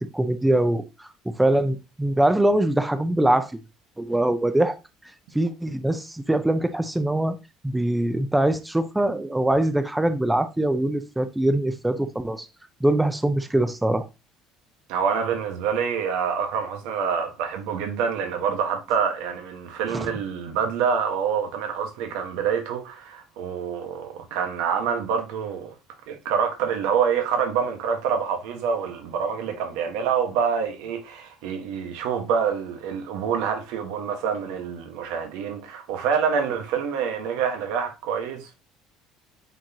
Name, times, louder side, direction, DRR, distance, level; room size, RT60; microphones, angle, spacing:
voice 1, 0.0-3.6 4.0-4.8 5.3-7.4 7.6-12.5 12.8-14.1 19.9-20.1, right 1 dB, 10° right, 0.8 m, -23 dB
voice 2, 14.9-25.7 26.1-38.5, right 7 dB, 85° right, 1.5 m, -26 dB
8.9 x 4.3 x 3.0 m
cardioid pair, 105°, 0 cm